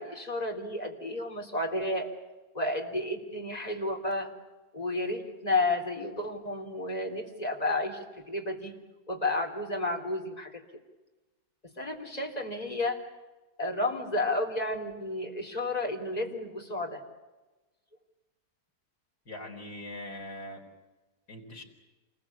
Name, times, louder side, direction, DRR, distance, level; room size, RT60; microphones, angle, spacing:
voice 1, 0.0-2.1 2.5-4.3 4.7-8.7 9.1-10.6 11.8-13.0 13.6-17.0, left 2 dB, 20° left, 2 dB, 3.7 m, -31 dB
voice 2, 19.3-20.6 21.3-21.6, left 1 dB, 70° left, -1 dB, 5.1 m, -41 dB
28.5 x 21.5 x 8.7 m, 1.1 s
omnidirectional pair, 1.8 m